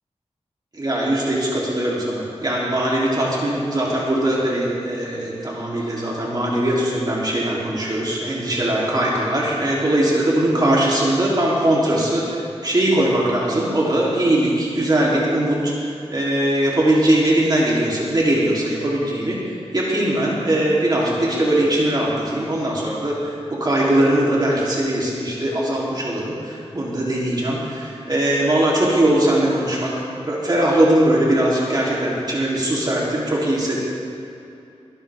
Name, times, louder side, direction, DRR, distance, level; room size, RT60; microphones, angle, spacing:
voice 1, 0.7-29.9 30.2-33.8, right 1 dB, 40° right, -6 dB, 3.3 m, -20 dB
22.5 x 12.5 x 3.6 m, 2.6 s
wide cardioid pair, 90°, 11 cm